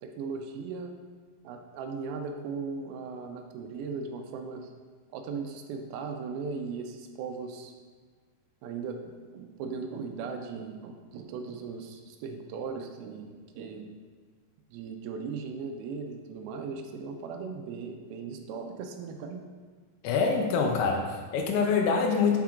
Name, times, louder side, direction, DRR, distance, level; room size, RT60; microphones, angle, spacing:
voice 1, 0.0-0.9 1.4-4.7 5.1-7.7 8.6-13.9 14.7-19.5, right 5 dB, 80° right, 5 dB, 2.4 m, -38 dB
voice 2, 20.0-22.4, left 5 dB, 90° left, 1 dB, 2.7 m, -25 dB
5.8 x 5.8 x 3.6 m, 1.5 s
omnidirectional pair, 4.5 m